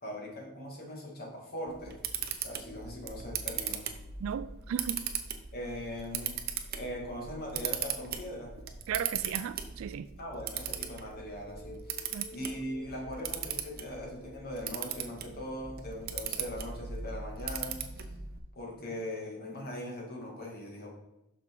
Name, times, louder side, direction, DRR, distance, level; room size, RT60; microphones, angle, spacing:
voice 1, 0.0-2.0 2.3-3.9 5.5-6.5 6.7-8.6 10.2-17.8 18.6-20.9, equal, 45° left, 2.1 m, -40 dB
Camera, 1.7-18.4, right 8 dB, 45° right, 0.7 m, -39 dB
voice 2, 4.2-5.1 8.9-10.1 12.1-12.3, right 8 dB, 70° right, 0.3 m, -36 dB
sound 1, 10.4-16.4, equal, 15° left, 0.9 m, -54 dB
6.0 x 6.0 x 4.6 m
head